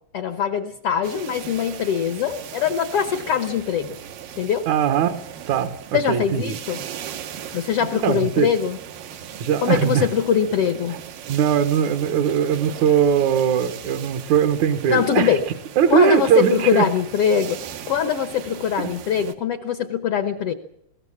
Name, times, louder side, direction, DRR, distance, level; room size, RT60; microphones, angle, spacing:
voice 1, 0.1-4.0 4.4-4.7 5.9-6.8 7.5-8.8 9.6-11.0 14.9-15.4 15.9-17.6 17.9-20.5, left 8 dB, 65° left, 9 dB, 1.6 m, -22 dB
sound 1, 1.0-19.4, right 9 dB, 90° right, 3.0 m, -38 dB
voice 2, 4.7-5.2 5.5-6.6 8.0-8.5 9.4-10.1 11.3-15.4 15.8-16.9 18.8-18.9, right 8 dB, 65° right, 7 dB, 2.4 m, -20 dB
21.0 x 18.5 x 7.2 m, 0.79 s
omnidirectional pair, 3.9 m